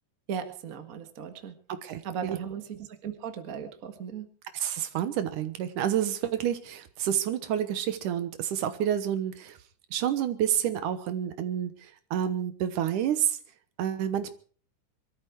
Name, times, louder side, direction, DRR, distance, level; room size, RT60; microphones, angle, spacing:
voice 1, 0.3-1.5 2.0-4.3, right 7 dB, 40° right, 8 dB, 1.4 m, -37 dB
voice 2, 1.7-2.3 4.5-9.6 9.9-11.7 12.1-13.4 13.8-14.3, right 10 dB, 80° right, 11 dB, 2.6 m, -29 dB
23.0 x 13.5 x 4.6 m, 0.43 s
omnidirectional pair, 3.6 m